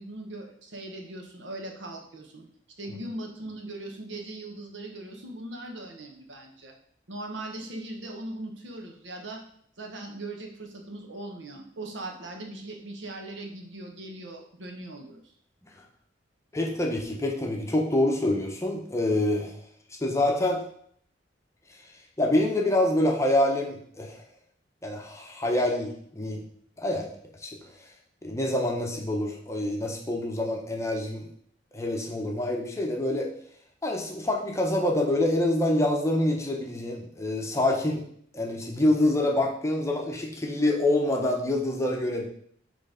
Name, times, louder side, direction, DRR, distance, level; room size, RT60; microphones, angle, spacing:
voice 1, 0.0-2.5 2.8-6.7 7.1-9.4 9.8-15.2, right 2 dB, 70° right, 2 dB, 1.2 m, -39 dB
voice 2, 16.5-19.6 20.0-20.6 22.2-24.2 24.8-26.5 26.8-27.1 27.4-27.5 28.2-31.3 31.7-33.3 33.8-38.0 38.3-42.3, left 1 dB, 15° left, 0 dB, 0.9 m, -26 dB
6.3 x 3.3 x 5.1 m, 0.64 s
head